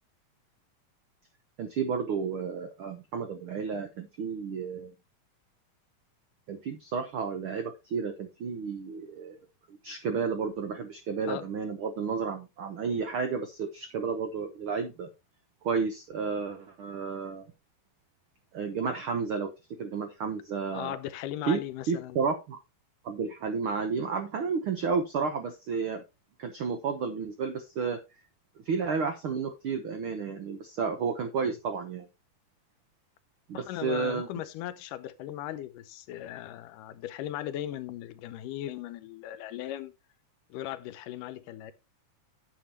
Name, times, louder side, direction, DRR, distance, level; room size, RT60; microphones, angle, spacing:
voice 1, 1.6-4.9 6.5-9.4 9.7-15.1 15.6-17.5 18.5-19.5 19.8-21.0 21.5-21.6 21.9-22.6 23.0-26.0 26.4-28.0 28.6-32.1 33.5-34.3, right 5 dB, 80° right, 1.2 m, -32 dB
voice 2, 20.7-22.2 33.5-39.9 40.5-41.7, left 12 dB, 90° left, 2.3 m, -38 dB
10.0 x 7.3 x 2.9 m
omnidirectional pair, 3.7 m